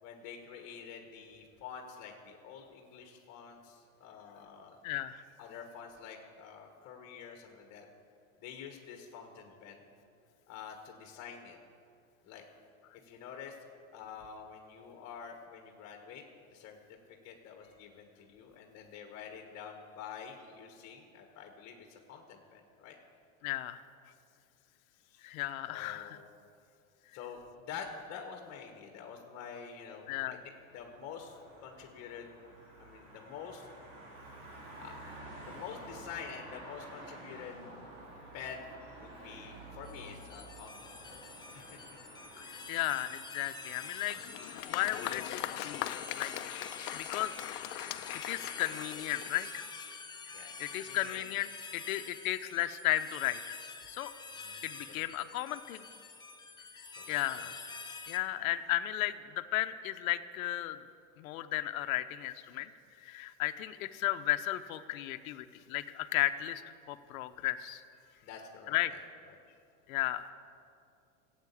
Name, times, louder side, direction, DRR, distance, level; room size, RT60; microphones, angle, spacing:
voice 1, 0.0-4.8 5.4-7.9 8.4-9.8 10.5-11.6 12.3-12.4 13.0-13.6 13.9-16.2 16.5-16.8 17.2-22.9 25.0-25.3 25.7-26.3 27.1-30.4 30.7-32.3 32.8-33.7 34.7-35.0 35.4-37.6 38.3-41.8 50.3-51.2 54.3-54.6 54.9-55.1 57.0-57.5 68.2-69.0 69.3-69.6, left 7 dB, 40° left, 3 dB, 1.6 m, -48 dB
voice 2, 4.8-5.2 23.4-23.8 25.2-26.2 30.1-30.4 42.4-44.2 44.4-45.9 46.1-46.3 46.9-47.4 47.7-49.6 50.6-53.6 53.9-54.1 54.6-55.9 57.1-57.5 58.1-60.8 61.2-62.7 63.0-66.6 66.9-67.8 68.7-68.9 69.9-70.3, left 15 dB, 75° left, 10 dB, 0.9 m, -34 dB
sound 1, 30.6-44.6, right 1 dB, 60° right, 4.1 m, -51 dB
sound 2, 39.8-58.2, left 4 dB, 10° left, 0.9 m, -47 dB
Applause, 44.1-49.7, left 14 dB, 55° left, 0.7 m, -40 dB
14.5 x 8.3 x 8.4 m, 2.5 s
supercardioid pair, 130°, 42 cm